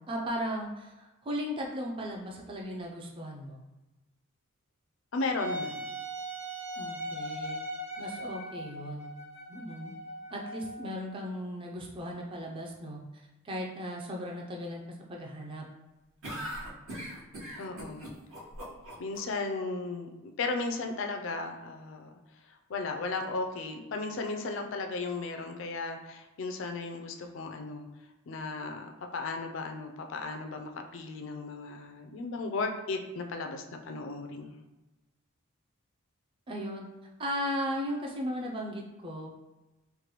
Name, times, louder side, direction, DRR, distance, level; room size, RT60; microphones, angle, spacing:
voice 1, 0.0-3.6 6.8-7.6 8.0-9.1 9.5-9.9 10.3-14.8 15.1-15.7 36.5-36.9 37.2-39.3, equal, 25° right, -1 dB, 0.4 m, -36 dB
voice 2, 5.1-5.8 17.6-18.1 19.0-22.1 22.7-27.9 28.3-34.6, left 3 dB, 65° left, 4 dB, 0.4 m, -35 dB
Wind instrument woodwind instrument, 5.4-11.0, right 1 dB, 60° right, 1.1 m, -39 dB
sound 1, 16.2-19.2, equal, 80° right, 1.2 m, -40 dB
3.2 x 2.2 x 3.0 m, 1.1 s
head